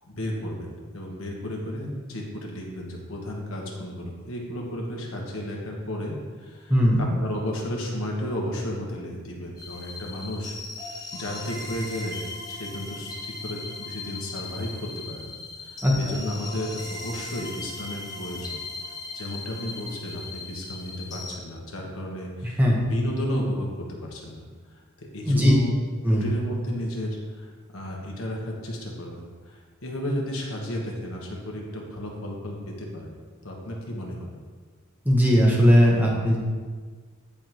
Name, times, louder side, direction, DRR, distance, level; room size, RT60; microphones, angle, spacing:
voice 1, 0.0-6.7 7.0-10.6 10.9-12.2 12.5-18.6 19.1-22.6 22.9-24.4 25.1-25.8 26.1-33.2 33.4-34.4, equal, 75° left, -1 dB, 1.3 m, -33 dB
voice 2, 6.7-7.0 15.8-15.9 22.4-22.8 25.2-25.5 26.0-26.2 35.0-36.4, equal, 10° right, -4 dB, 1.0 m, -18 dB
sound 1, 9.6-21.4, left 3 dB, 20° left, 0.8 m, -38 dB
10.0 x 3.5 x 3.0 m, 1.5 s
head